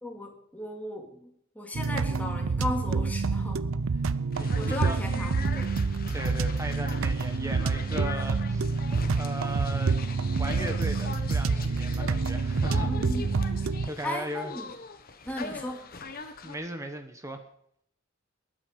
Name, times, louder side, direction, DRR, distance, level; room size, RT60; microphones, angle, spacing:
voice 1, 0.0-3.7 4.6-5.7 12.7-13.3 14.0-14.7 15.2-15.9, left 1 dB, 10° left, 1 dB, 2.5 m, -36 dB
sound 1, 1.7-13.9, right 4 dB, 70° right, 0.6 m, -27 dB
sound 2, 4.3-16.5, left 4 dB, 45° left, 1.3 m, -41 dB
voice 2, 4.4-5.1 6.1-8.7 9.1-10.0 10.4-12.9 13.8-14.5 15.5-15.6 16.4-17.4, right 1 dB, 15° right, 7 dB, 1.1 m, -37 dB
20.0 x 8.9 x 5.2 m, 0.69 s
head